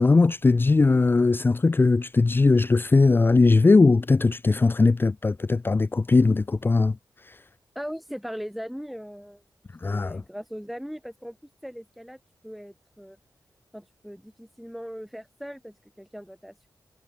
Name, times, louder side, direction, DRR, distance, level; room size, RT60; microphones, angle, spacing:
voice 1, 0.0-7.0 7.2-7.4 9.8-10.2, left 3 dB, 30° left, 0.6 m, -20 dB
voice 2, 7.7-9.4 9.8-11.4 11.6-12.2 12.4-13.2 13.7-16.7, equal, ahead, 2.8 m, -39 dB
wide cardioid pair, 110°, 7 cm